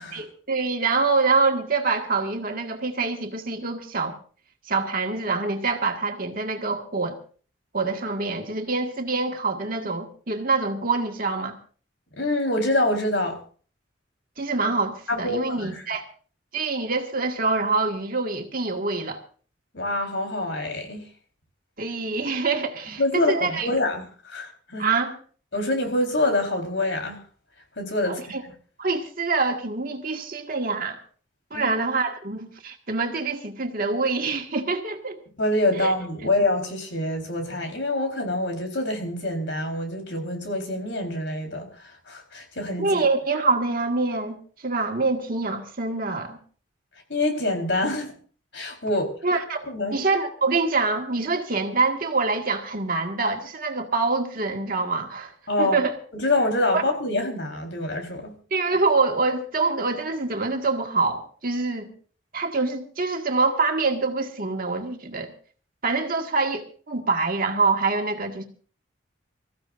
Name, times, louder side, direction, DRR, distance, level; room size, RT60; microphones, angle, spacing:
voice 1, 0.1-4.2 4.7-7.1 7.7-11.6 14.4-16.0 16.5-19.2 21.8-23.7 24.8-25.2 28.1-28.4 28.8-31.0 31.5-35.2 35.7-35.9 42.8-46.4 49.2-49.7 49.9-55.3 55.6-56.0 56.7-56.8 58.5-61.9 62.3-65.3 65.8-68.4, right 3 dB, 50° right, 1.9 m, -25 dB
voice 2, 12.2-13.4 15.1-15.8 19.7-21.0 23.0-24.9 25.5-27.2 27.8-28.3 31.5-31.7 35.4-43.0 47.1-48.1 48.5-49.0 49.7-50.0 55.5-55.8 56.1-58.3, left 2 dB, 70° left, 4.2 m, -26 dB
26.5 x 15.0 x 2.6 m
head